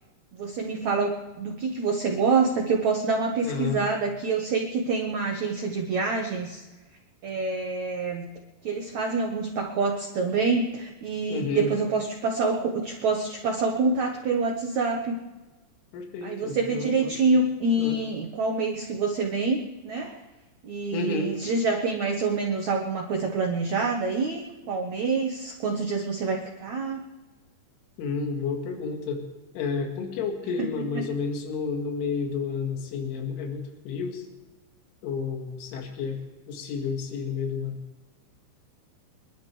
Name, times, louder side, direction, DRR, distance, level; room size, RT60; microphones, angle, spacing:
voice 1, 0.3-6.6 7.2-8.3 8.6-15.2 16.2-20.2 20.6-27.0 30.6-30.7 30.9-31.0, right 4 dB, 85° right, 1 dB, 1.6 m, -26 dB
voice 2, 3.4-3.8 11.3-11.7 15.9-17.4 17.8-18.0 20.9-21.3 28.0-29.3 29.5-34.3 35.0-36.2 36.5-37.8, left 5 dB, 85° left, 2 dB, 4.3 m, -31 dB
27.5 x 11.5 x 3.4 m, 1.2 s
omnidirectional pair, 5.5 m